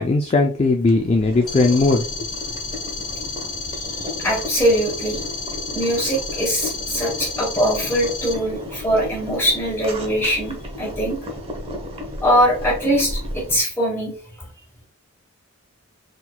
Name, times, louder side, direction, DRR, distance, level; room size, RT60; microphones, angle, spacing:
voice 1, 0.0-2.0, left 3 dB, 30° left, 3 dB, 0.3 m, -18 dB
Boiling, 0.8-13.6, left 1 dB, 25° right, 0.9 m, -34 dB
sound 1, 1.5-8.3, left 4 dB, 90° left, 1.0 m, -31 dB
voice 2, 3.8-5.3 5.7-11.2 12.2-14.1, equal, 10° left, -3 dB, 1.7 m, -22 dB
4.3 x 3.8 x 2.2 m, 0.39 s
head